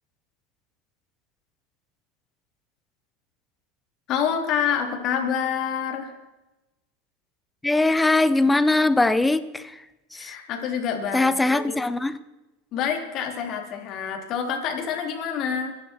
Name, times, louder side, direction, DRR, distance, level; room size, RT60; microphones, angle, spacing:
voice 1, 4.1-6.1 10.1-11.6 12.7-15.7, left 7 dB, 45° left, 2 dB, 3.5 m, -27 dB
voice 2, 7.6-9.8 10.1-10.3 11.1-12.2, left 2 dB, 10° left, 14 dB, 0.7 m, -21 dB
24.5 x 11.0 x 4.5 m, 1.0 s
supercardioid pair, 125°, 0 cm